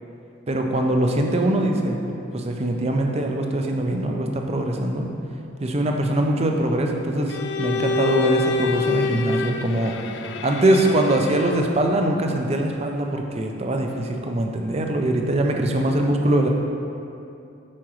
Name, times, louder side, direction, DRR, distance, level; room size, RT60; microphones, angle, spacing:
voice 1, 0.5-2.0 2.3-5.1 5.6-16.5, right 1 dB, 30° right, 2 dB, 0.5 m, -22 dB
Bowed string instrument, 7.3-11.8, left 4 dB, 60° left, 0.3 m, -27 dB
8.5 x 6.0 x 3.1 m, 2.7 s
head